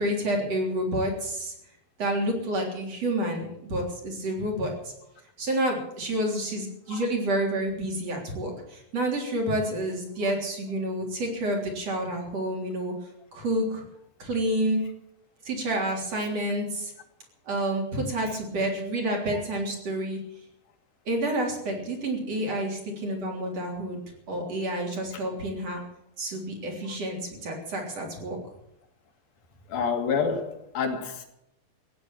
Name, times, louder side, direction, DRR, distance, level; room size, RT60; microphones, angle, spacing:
voice 1, 0.0-1.5 2.0-4.9 5.4-12.9 13.3-13.8 14.2-14.8 15.4-16.9 17.5-20.2 21.1-24.0 24.3-25.8 26.2-28.4, right 1 dB, 45° right, 0 dB, 4.5 m, -29 dB
voice 2, 29.7-31.3, left 5 dB, 75° left, 5 dB, 3.7 m, -28 dB
16.0 x 9.8 x 8.9 m, 0.80 s
omnidirectional pair, 4.2 m